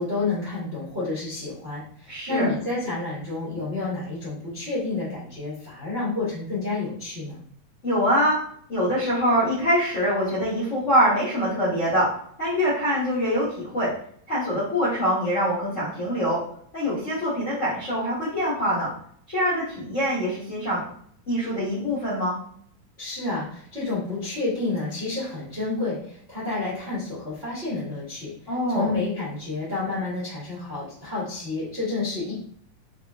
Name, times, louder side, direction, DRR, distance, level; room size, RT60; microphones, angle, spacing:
voice 1, 0.0-7.4 23.0-32.3, left 3 dB, 70° right, -11 dB, 0.5 m, -30 dB
voice 2, 2.1-2.5 7.8-8.4 8.7-12.1 12.4-13.9 14.3-16.4 16.7-18.9 19.3-20.8 21.3-22.4 28.5-28.9, equal, 70° left, -10 dB, 0.7 m, -24 dB
6.1 x 2.6 x 2.4 m, 0.63 s
omnidirectional pair, 4.0 m